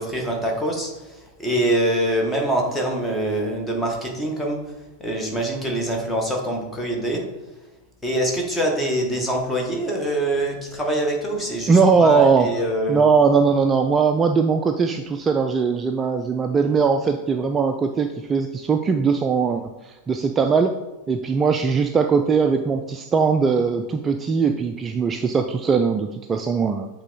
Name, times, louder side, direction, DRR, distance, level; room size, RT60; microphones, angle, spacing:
voice 1, 0.0-4.6 5.0-7.2 8.0-13.0, right 1 dB, 10° left, 1 dB, 1.5 m, -24 dB
voice 2, 11.7-12.5 12.9-20.7 21.1-26.9, right 5 dB, 20° right, 6 dB, 0.3 m, -20 dB
8.0 x 3.5 x 4.0 m, 1.1 s
figure-of-eight pair, 90°, 0 cm